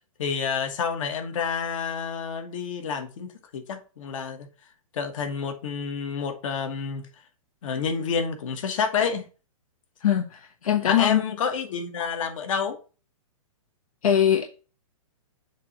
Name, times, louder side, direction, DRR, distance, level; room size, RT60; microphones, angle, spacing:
voice 1, 0.2-3.3 3.5-4.5 4.9-7.1 7.6-9.2 10.8-12.8, left 6 dB, 65° left, 1.3 m, -29 dB
voice 2, 10.0-11.2 14.0-14.5, left 9 dB, 80° left, 0.9 m, -22 dB
7.1 x 2.9 x 5.6 m
hypercardioid pair, 150°, 18 cm